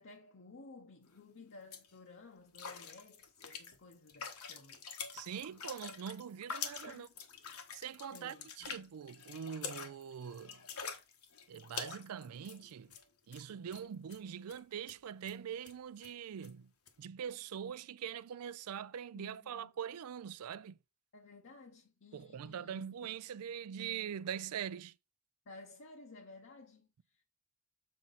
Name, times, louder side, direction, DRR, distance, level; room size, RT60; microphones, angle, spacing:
voice 1, 0.0-4.8 6.9-7.1 8.1-8.8 19.1-19.7 21.1-23.1 25.5-27.2, left 3 dB, 60° left, 0.8 m, -55 dB
sound 1, 1.1-1.2 1.5-1.9 2.5-13.1 13.3-13.4 13.7-14.2 14.5-14.6 14.9-15.0 15.3-15.4 15.6-15.8 16.0-16.1 16.4-16.5 16.9-17.0, left 6 dB, 80° left, 1.3 m, -46 dB
voice 2, 5.1-7.1 7.7-10.6 11.5-12.9 13.3-16.7 17.0-20.8 22.1-24.9, right 8 dB, 85° right, 0.4 m, -43 dB
7.6 x 4.3 x 4.0 m
head